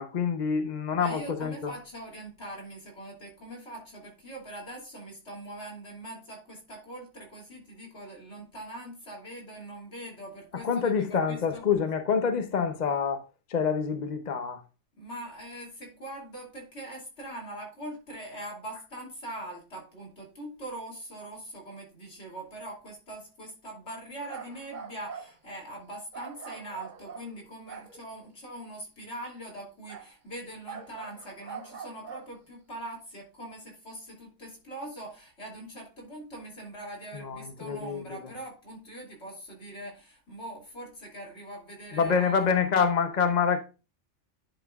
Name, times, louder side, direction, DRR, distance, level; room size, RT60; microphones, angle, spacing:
voice 1, 0.0-1.7 10.6-13.2 13.5-14.6 37.1-38.2 41.9-43.6, left 6 dB, 45° left, 0.7 m, -27 dB
voice 2, 0.9-11.6 15.0-42.4, right 1 dB, 65° left, 3.0 m, -42 dB
sound 1, 24.2-25.3 26.1-28.1 29.9-30.1 30.7-32.3, right 6 dB, 45° right, 0.8 m, -43 dB
10.5 x 5.8 x 2.3 m
omnidirectional pair, 1.2 m